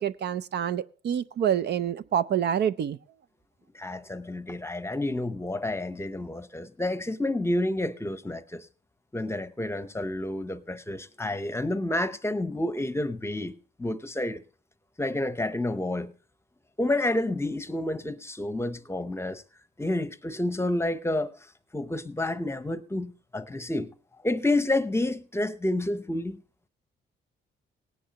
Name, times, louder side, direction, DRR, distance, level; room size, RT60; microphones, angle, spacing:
voice 1, 0.0-3.0, right 9 dB, 55° right, 0.5 m, -27 dB
voice 2, 3.7-8.7 9.1-13.5 13.8-14.4 15.0-16.1 16.8-19.4 19.8-21.3 21.7-23.9 24.2-26.4, left 1 dB, 15° left, 0.8 m, -29 dB
18.0 x 10.0 x 2.9 m
cardioid pair, 90°, 20 cm